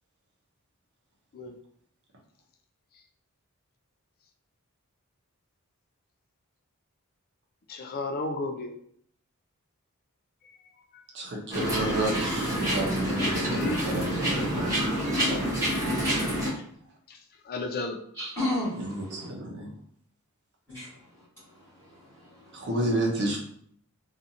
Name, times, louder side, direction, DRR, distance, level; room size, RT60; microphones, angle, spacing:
voice 1, 7.7-8.7 10.9-11.0 13.1-14.2 15.9-16.4 17.1-17.2 17.4-18.0, left 3 dB, 40° left, 5 dB, 0.4 m, -35 dB
voice 2, 11.1-14.8 18.8-19.7 22.5-23.4, right 1 dB, 50° right, 0 dB, 0.7 m, -30 dB
sound 1, 11.5-16.5, equal, 15° right, 1.0 m, -27 dB
voice 3, 18.2-19.3 20.7-20.9 21.8-22.5, left 1 dB, 10° left, -12 dB, 1.3 m, -33 dB
2.7 x 2.4 x 2.6 m, 0.64 s
head